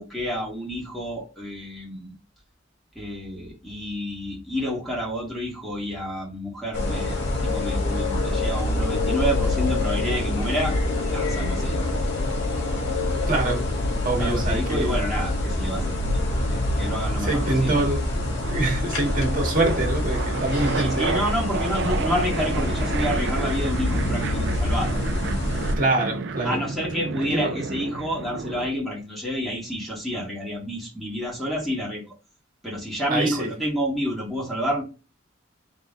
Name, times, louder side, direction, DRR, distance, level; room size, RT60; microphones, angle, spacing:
voice 1, 0.0-2.1 3.0-7.2 7.4-10.8 11.1-11.9 14.2-15.9 16.5-17.8 20.8-25.0 26.4-32.1 32.6-34.8, equal, ahead, 1.9 m, -29 dB
sound 1, 6.7-25.8, left 1 dB, 65° left, 1.8 m, -25 dB
sound 2, 10.8-11.9 13.8-15.0 16.0-16.4 16.8-28.7, right 4 dB, 65° right, 0.5 m, -33 dB
voice 2, 13.2-13.7 14.0-15.0 17.2-18.0 18.4-21.2 25.8-26.6 27.3-27.5 33.1-33.5, right 2 dB, 45° right, 1.6 m, -25 dB
3.7 x 3.7 x 3.7 m
head